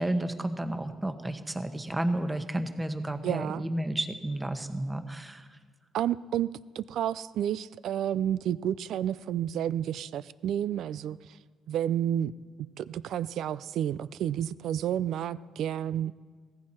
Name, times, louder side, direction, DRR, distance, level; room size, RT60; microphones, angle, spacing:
voice 1, 0.0-5.5, right 1 dB, 15° right, 8 dB, 1.2 m, -31 dB
voice 2, 3.2-3.6 5.9-6.5 6.7-11.2 11.7-12.3 12.8-16.1, right 10 dB, 75° right, 18 dB, 0.4 m, -30 dB
18.0 x 15.0 x 4.4 m, 1.5 s
cardioid pair, 90°, 0 cm